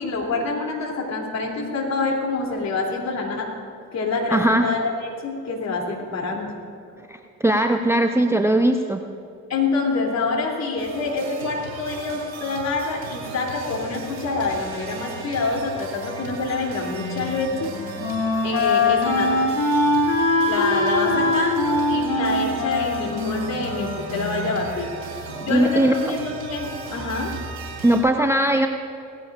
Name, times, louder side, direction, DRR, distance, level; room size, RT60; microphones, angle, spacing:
voice 1, 0.0-3.5 3.9-6.5 9.5-17.7 18.4-19.5 20.5-27.4, left 3 dB, 40° left, 0 dB, 3.3 m, -26 dB
voice 2, 4.3-4.7 7.1-9.0 25.5-26.1 27.8-28.7, right 1 dB, 5° right, 5 dB, 0.6 m, -19 dB
sound 1, 10.8-28.0, right 5 dB, 85° right, 3.0 m, -36 dB
Wind instrument woodwind instrument, 17.0-24.8, left 2 dB, 65° left, 3.5 m, -23 dB
18.0 x 15.5 x 2.6 m, 2.6 s
hypercardioid pair, 60°, 40 cm